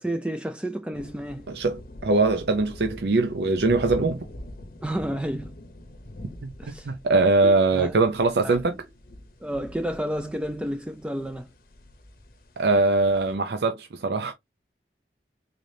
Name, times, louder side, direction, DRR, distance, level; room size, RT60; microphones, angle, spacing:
voice 1, 0.0-1.5 4.8-5.5 6.6-6.9 7.4-8.0 8.4-8.6 9.4-11.5, right 1 dB, 5° right, 0.3 m, -31 dB
sound 1, 0.9-13.4, left 1 dB, 50° left, 0.7 m, -44 dB
voice 2, 1.5-4.2 6.4-8.8 12.6-14.3, right 3 dB, 70° right, 0.5 m, -22 dB
3.8 x 3.3 x 2.7 m
head